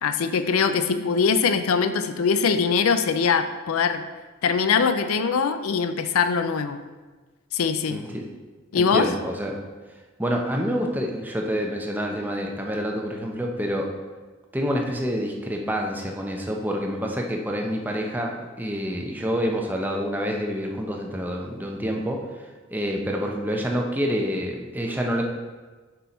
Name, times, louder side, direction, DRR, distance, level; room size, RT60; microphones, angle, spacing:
voice 1, 0.0-4.1 4.4-6.8 7.5-8.0 8.7-9.1, left 5 dB, 80° left, 10 dB, 0.5 m, -22 dB
voice 2, 7.9-8.2 8.8-9.6 10.2-13.9 14.5-25.2, equal, 10° right, 1 dB, 0.8 m, -27 dB
6.8 x 5.5 x 4.3 m, 1.3 s
head